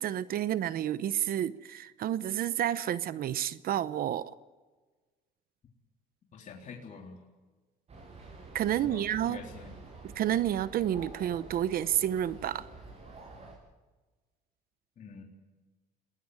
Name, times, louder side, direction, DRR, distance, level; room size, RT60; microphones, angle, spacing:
voice 1, 0.0-4.3 8.5-9.4 10.1-12.7, right 11 dB, 60° right, 16 dB, 0.8 m, -30 dB
voice 2, 6.3-7.2 8.7-9.7 15.0-15.2, left 5 dB, 50° left, 0 dB, 3.7 m, -46 dB
sound 1, 7.9-13.6, right 3 dB, 40° right, 8.0 m, -48 dB
28.0 x 20.0 x 9.9 m, 1.3 s
cardioid pair, 110°, 17 cm